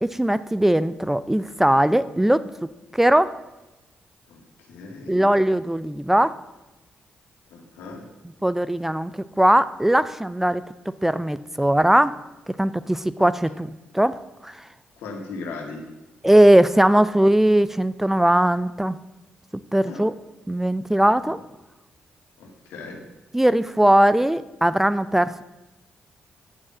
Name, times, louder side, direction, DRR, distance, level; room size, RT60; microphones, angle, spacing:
voice 1, 0.0-3.4 5.1-6.4 8.4-10.6 11.0-12.2 12.5-14.6 16.2-19.0 19.7-20.1 20.5-21.4 23.3-25.4, right 1 dB, 10° right, 15 dB, 0.4 m, -19 dB
voice 2, 4.3-5.3 7.5-8.0 13.2-13.3 15.0-15.8 19.8-20.0 22.4-23.0, left 3 dB, 90° left, 2 dB, 1.7 m, -38 dB
10.0 x 4.7 x 7.3 m, 1.1 s
supercardioid pair, 65°, 4 cm